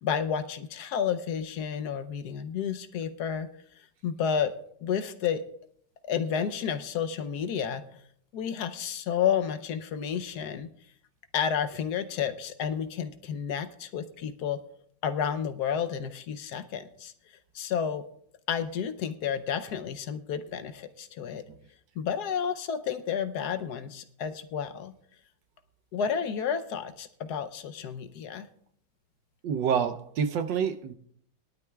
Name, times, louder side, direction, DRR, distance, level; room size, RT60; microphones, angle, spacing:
voice 1, 0.0-3.5 4.0-4.5 4.8-5.4 6.0-7.8 8.3-10.7 11.3-14.6 15.0-17.1 17.5-18.0 18.5-21.4 22.0-24.9 25.9-28.5, left 8 dB, 70° left, 10 dB, 1.2 m, -31 dB
voice 2, 29.4-30.9, right 7 dB, 85° right, 8 dB, 1.5 m, -27 dB
21.0 x 12.0 x 2.3 m, 0.63 s
omnidirectional pair, 1.9 m